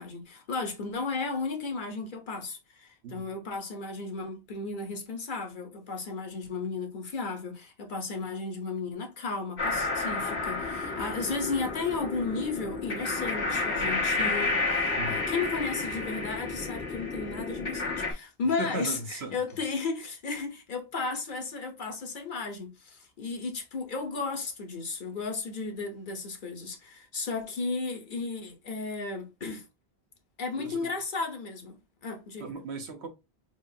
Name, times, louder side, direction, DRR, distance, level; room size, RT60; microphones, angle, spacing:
voice 1, 0.0-29.6 30.4-31.8 32.0-32.5, left 4 dB, 50° left, 1.0 m, -34 dB
voice 2, 3.0-3.4 15.0-15.3 18.6-19.4 30.6-30.9 32.4-33.1, right 3 dB, 85° right, 1.2 m, -37 dB
sound 1, 9.6-18.1, left 3 dB, 80° left, 1.6 m, -31 dB
6.1 x 2.5 x 2.7 m
omnidirectional pair, 1.1 m